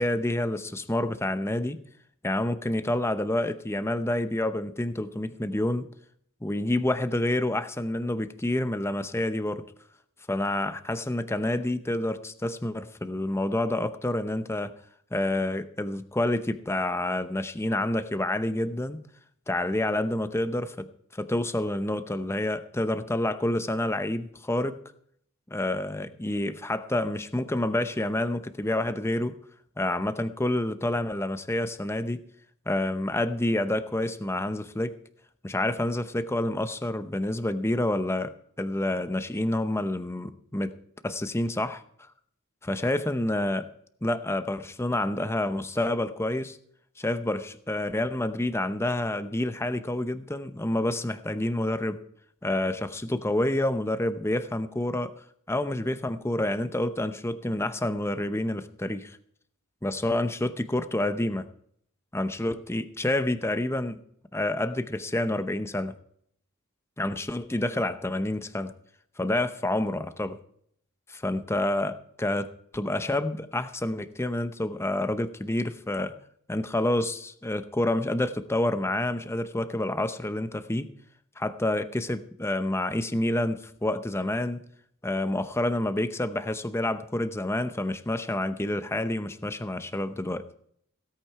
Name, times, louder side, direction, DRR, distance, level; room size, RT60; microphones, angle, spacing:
voice 1, 0.0-1.8 2.2-5.9 6.4-9.6 10.3-14.7 15.1-19.0 19.5-24.8 25.5-29.4 29.8-32.2 32.7-35.0 35.4-38.3 38.6-40.7 41.0-41.8 42.6-43.7 44.0-46.6 47.0-52.0 52.4-55.1 55.5-59.2 59.8-61.5 62.1-64.0 64.3-65.9 67.0-68.7 69.2-70.4 71.1-76.1 76.5-80.9 81.4-84.6 85.0-90.5, left 1 dB, 10° left, 11 dB, 0.7 m, -28 dB
16.5 x 8.9 x 4.7 m, 0.66 s
head